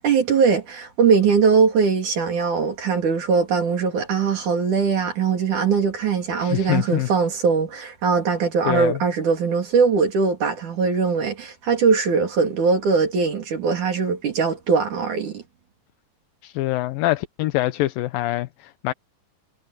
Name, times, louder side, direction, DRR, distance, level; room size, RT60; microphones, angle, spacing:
voice 1, 0.0-15.4, right 5 dB, 60° right, 4.2 m, -21 dB
voice 2, 6.4-7.1 8.7-9.0 16.4-18.9, left 17 dB, 85° left, 2.6 m, -24 dB
omnidirectional pair, 4.0 m